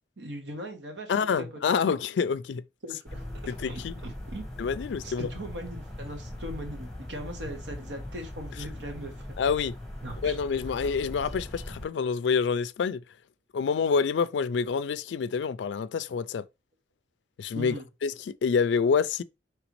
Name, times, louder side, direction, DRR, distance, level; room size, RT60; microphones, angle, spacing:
voice 1, 0.2-1.8 2.8-4.5 5.0-9.4 10.0-10.4 10.6-10.7 17.5-17.9, right 1 dB, 80° right, 1.2 m, -40 dB
voice 2, 1.1-2.6 3.5-3.9 4.6-5.3 9.4-9.8 10.2-13.0 13.5-16.4 17.4-17.7 18.0-19.2, left 6 dB, 75° left, 0.3 m, -27 dB
sound 1, 3.1-11.9, left 1 dB, ahead, 1.3 m, -40 dB
5.0 x 3.2 x 3.1 m
head